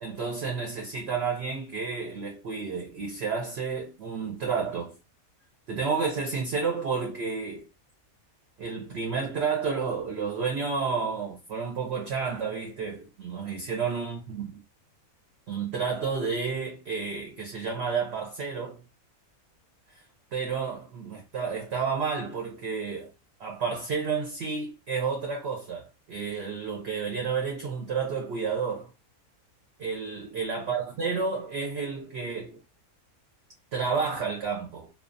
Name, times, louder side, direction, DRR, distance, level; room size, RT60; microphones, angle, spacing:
voice 1, 0.0-5.0 5.7-7.7 8.6-14.5 15.5-18.8 19.9-20.0 20.3-23.1 23.4-28.9 29.8-32.6 33.7-34.9, right 5 dB, 60° right, 0.7 m, -31 dB
2.3 x 2.2 x 2.5 m
omnidirectional pair, 1.5 m